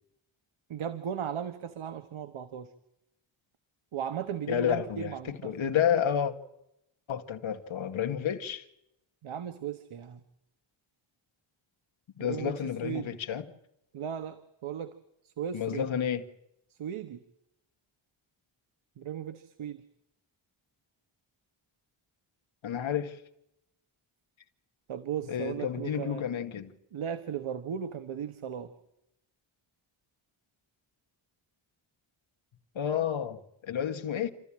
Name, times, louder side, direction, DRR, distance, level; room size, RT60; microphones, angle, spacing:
voice 1, 0.7-2.7 3.9-5.5 9.2-10.2 12.2-13.2 13.9-15.0 15.2-15.9 16.7-17.2 19.0-19.8 24.9-26.2 26.9-28.7, right 8 dB, 75° right, 1.5 m, -36 dB
voice 2, 4.5-6.3 7.1-8.7 12.2-13.4 15.5-16.2 22.6-23.2 25.3-26.7 32.8-34.3, left 9 dB, 70° left, 2.0 m, -30 dB
28.5 x 14.5 x 8.7 m
wide cardioid pair, 140°, 49 cm